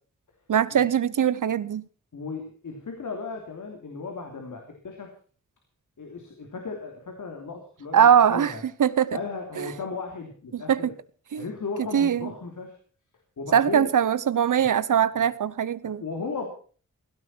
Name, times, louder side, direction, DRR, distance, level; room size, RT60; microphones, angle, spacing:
voice 1, 0.5-1.8 7.9-8.5 8.8-9.2 9.6-9.7 10.5-10.8 11.3-11.4 11.9-12.3 13.5-16.0, right 8 dB, 85° right, 0.9 m, -21 dB
voice 2, 2.1-5.1 6.0-8.6 9.1-10.9 11.4-12.7 13.4-13.9 15.2-15.3 15.8-16.5, left 4 dB, 80° left, 3.2 m, -36 dB
16.5 x 16.5 x 4.5 m
wide cardioid pair, 145°, 30 cm